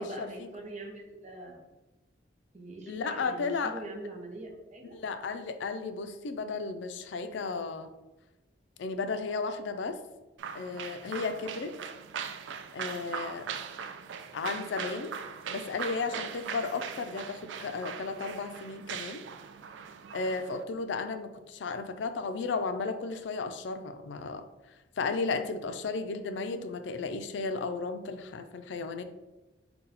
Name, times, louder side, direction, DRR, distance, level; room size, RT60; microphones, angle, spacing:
voice 1, 0.0-1.7 2.5-5.0 26.3-26.8, right 2 dB, 40° right, 2 dB, 0.6 m, -43 dB
voice 2, 2.9-3.8 4.9-7.9 8.8-10.0 10.5-11.7 12.7-13.5 14.3-15.1 15.5-19.2 20.1-24.4 25.0-29.0, left 4 dB, 80° left, 8 dB, 0.4 m, -34 dB
sound 1, 10.4-20.6, right 7 dB, 85° right, 0.3 m, -40 dB
4.0 x 2.2 x 4.0 m, 1.0 s
head